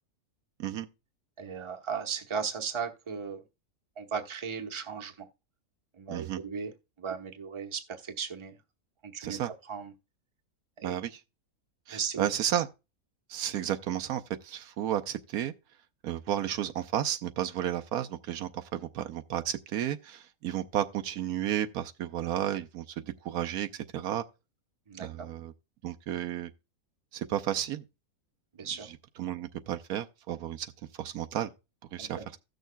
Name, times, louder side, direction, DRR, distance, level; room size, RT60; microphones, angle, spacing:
voice 1, 1.4-3.4 4.0-5.3 5.9-6.7 7.0-8.5 9.0-9.9 10.8-11.0 11.9-12.3 24.9-25.3 28.5-28.9 32.0-32.4, right 6 dB, 25° right, 0.9 m, -36 dB
voice 2, 6.1-6.4 9.2-9.5 10.8-11.1 11.9-12.7 13.3-15.5 16.0-24.2 25.0-25.5 25.8-26.5 27.1-27.8 29.2-30.7 31.0-31.5 31.9-32.2, right 11 dB, 80° right, 1.2 m, -32 dB
16.0 x 6.4 x 2.2 m
omnidirectional pair, 1.6 m